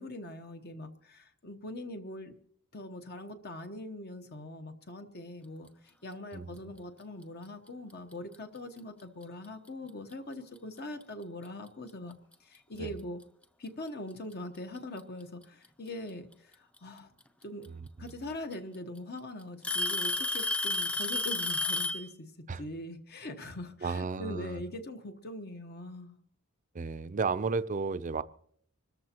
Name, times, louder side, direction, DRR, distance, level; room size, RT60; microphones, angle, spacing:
voice 1, 0.0-2.3 2.7-12.1 12.4-13.2 13.6-17.1 17.4-17.7 18.0-26.1, left 1 dB, 45° left, 6 dB, 1.0 m, -42 dB
voice 2, 6.3-6.7 12.8-12.9 17.7-18.1 22.5-22.6 23.8-24.6 26.7-28.2, right 4 dB, 35° right, 14 dB, 0.5 m, -33 dB
Alarm / Tick-tock, 8.1-8.4 9.2-9.3 10.1-10.2 11.9-12.0 13.2-13.3 14.6-15.0 16.8-16.9 18.1-18.2 18.5-19.0 19.6-22.1, left 2 dB, 5° left, 0.6 m, -31 dB
25.5 x 14.0 x 2.9 m, 0.65 s
head